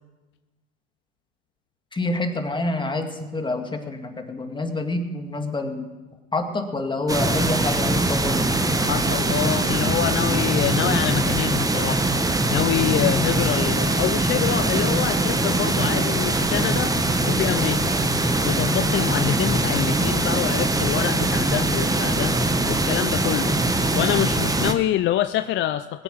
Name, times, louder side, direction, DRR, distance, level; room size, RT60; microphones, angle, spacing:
voice 1, 1.9-5.9 6.3-8.4 13.0-13.1, left 2 dB, 15° left, 5 dB, 2.0 m, -27 dB
sound 1, 7.1-24.7, right 2 dB, 10° right, 1.2 m, -22 dB
voice 2, 8.8-12.1 12.5-16.9 17.3-17.9 18.4-22.4 22.7-23.6 23.9-26.0, left 12 dB, 35° left, 11 dB, 0.5 m, -26 dB
21.5 x 8.1 x 6.3 m, 1.2 s
hypercardioid pair, 90°, 35 cm